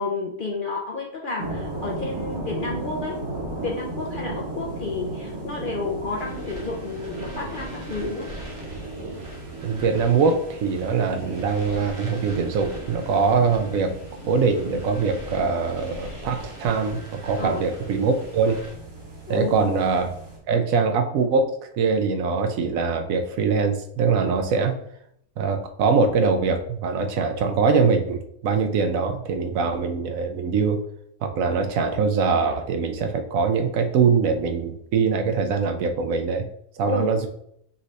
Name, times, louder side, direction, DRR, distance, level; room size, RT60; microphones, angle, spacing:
voice 1, 0.0-3.1 3.6-8.3 17.4-17.6 19.3-19.8 36.9-37.1, left 3 dB, 55° left, -1 dB, 0.6 m, -31 dB
sound 1, 1.4-20.4, right 2 dB, 55° right, 1.4 m, -36 dB
sound 2, 6.2-18.7, equal, 25° right, 0.9 m, -43 dB
voice 2, 9.6-13.9 14.3-18.6 19.3-20.1 20.5-24.8 25.4-30.8 31.2-36.5 36.8-37.3, right 5 dB, 75° right, 6 dB, 1.0 m, -23 dB
5.3 x 2.6 x 3.2 m, 0.70 s
omnidirectional pair, 1.5 m